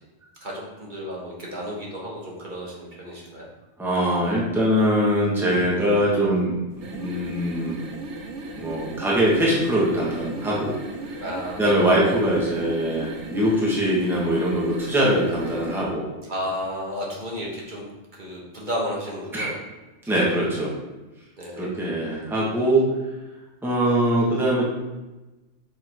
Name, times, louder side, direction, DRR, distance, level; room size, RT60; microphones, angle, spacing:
voice 1, 0.4-3.5 11.2-12.1 16.3-17.9 18.1-19.5 20.1-20.4 21.4-21.7, equal, 40° right, -3 dB, 1.4 m, -32 dB
voice 2, 3.8-7.8 8.6-10.8 11.6-16.0 19.3-19.5 20.1-20.7 21.6-22.8 23.6-24.7, equal, ahead, -6 dB, 1.3 m, -22 dB
sound 1, 6.7-15.9, right 2 dB, 75° right, 1.2 m, -36 dB
6.1 x 3.8 x 4.7 m, 1.1 s
omnidirectional pair, 1.2 m